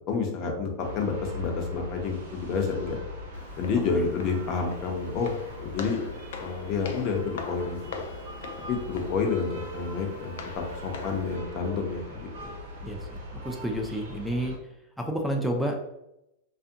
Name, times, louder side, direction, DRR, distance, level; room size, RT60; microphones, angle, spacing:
voice 1, 0.1-3.0 3.6-6.0 6.4-8.0 8.7-12.5, left 5 dB, 40° left, 2 dB, 0.6 m, -29 dB
sound 1, 0.8-14.6, left 1 dB, 90° right, 0.7 m, -41 dB
Walk footsteps, 3.3-11.3, left 5 dB, 80° left, 0.4 m, -42 dB
voice 2, 12.8-14.5 15.0-15.8, right 1 dB, ahead, 2 dB, 0.3 m, -30 dB
2.6 x 2.5 x 2.5 m, 0.87 s
supercardioid pair, 135°, 0 cm